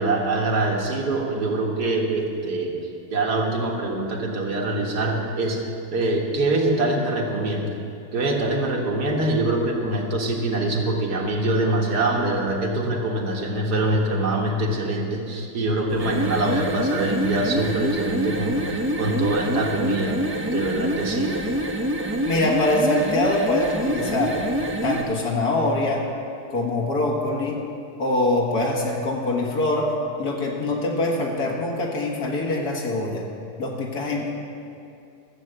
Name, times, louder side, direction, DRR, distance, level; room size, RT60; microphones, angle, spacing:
voice 1, 0.0-2.8 3.1-5.6 5.9-7.7 8.1-20.2 20.5-21.3, right 2 dB, 80° right, 0 dB, 2.1 m, -24 dB
sound 1, 15.9-25.1, right 1 dB, 10° right, 0.6 m, -26 dB
voice 2, 22.3-24.4 24.8-26.1 26.5-27.6 28.0-29.9 30.2-33.3 33.6-34.3, left 2 dB, 70° left, -1 dB, 2.3 m, -24 dB
13.0 x 7.4 x 8.0 m, 2.5 s
omnidirectional pair, 1.7 m